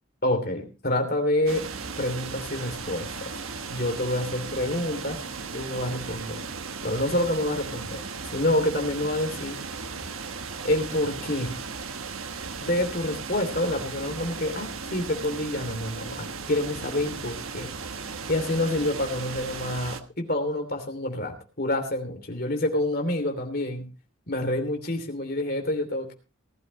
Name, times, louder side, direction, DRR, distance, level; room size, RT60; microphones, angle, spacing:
voice 1, 0.2-1.7 2.0-3.3 3.7-5.2 5.5-6.4 6.8-8.0 8.3-9.6 10.6-11.6 12.6-17.7 18.3-23.9 24.3-26.1, left 1 dB, 45° left, 5 dB, 3.0 m, -27 dB
sound 1, 1.5-20.0, right 5 dB, 80° right, 1.3 m, -36 dB
19.0 x 13.0 x 3.1 m, 0.31 s
head